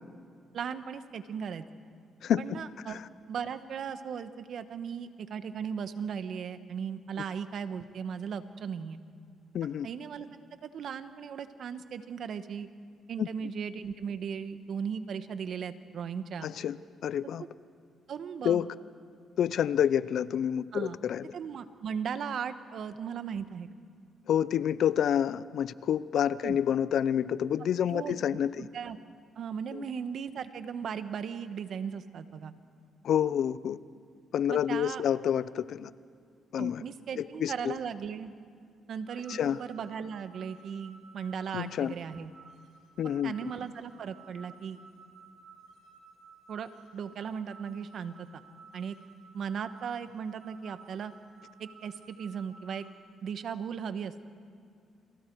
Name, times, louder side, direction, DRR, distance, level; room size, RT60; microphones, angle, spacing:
voice 1, 0.5-1.6 2.4-3.0 3.3-9.0 9.6-10.3 10.6-12.7 13.1-16.5 17.4-17.5 18.1-18.6 20.7-21.0 21.3-23.7 26.4-26.6 27.9-28.2 28.6-29.0 29.4-32.5 34.5-35.0 36.6-38.3 38.9-42.3 43.0-44.8 46.5-48.4 48.7-49.0 49.3-51.1 51.6-52.9 53.2-54.1, right 7 dB, 65° right, 10 dB, 1.3 m, -37 dB
voice 2, 9.5-9.9 13.2-13.3 16.4-16.8 17.0-17.4 18.4-18.7 19.4-21.3 24.3-28.7 29.7-29.9 33.0-33.8 34.3-35.9 36.5-36.8 37.2-37.7 39.3-39.6 41.5-41.9 43.0-43.5, left 9 dB, 70° left, 17 dB, 0.6 m, -28 dB
sound 1, 39.1-52.9, right 4 dB, 85° right, 3.9 m, -55 dB
29.5 x 28.0 x 4.7 m, 2.3 s
cardioid pair, 90°, 0 cm